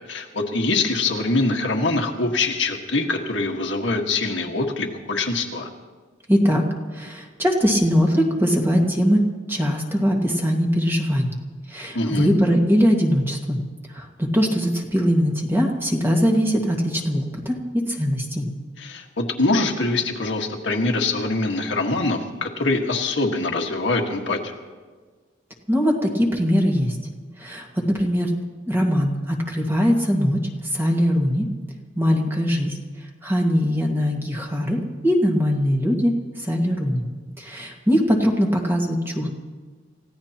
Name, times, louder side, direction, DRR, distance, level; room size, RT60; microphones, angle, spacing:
voice 1, 0.1-5.7 11.9-12.3 18.8-24.5, left 2 dB, 65° left, 1 dB, 1.7 m, -24 dB
voice 2, 6.3-11.3 11.7-13.6 13.9-18.5 25.7-27.0 27.4-28.4 28.7-31.5 31.9-32.8 33.2-37.0 37.4-39.3, equal, 10° right, 0 dB, 1.8 m, -21 dB
29.0 x 16.0 x 3.0 m, 1.4 s
head